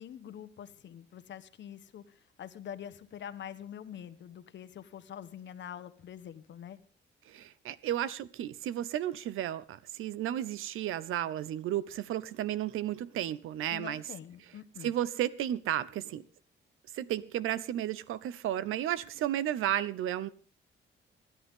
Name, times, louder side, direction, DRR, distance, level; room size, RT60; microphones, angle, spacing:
voice 1, 0.0-6.8 13.7-14.9, left 9 dB, 65° left, 1.3 m, -45 dB
voice 2, 7.3-14.0 14.8-16.2 16.9-20.3, right 12 dB, 85° right, 0.8 m, -33 dB
26.5 x 11.0 x 3.7 m
cardioid pair, 115°, 21 cm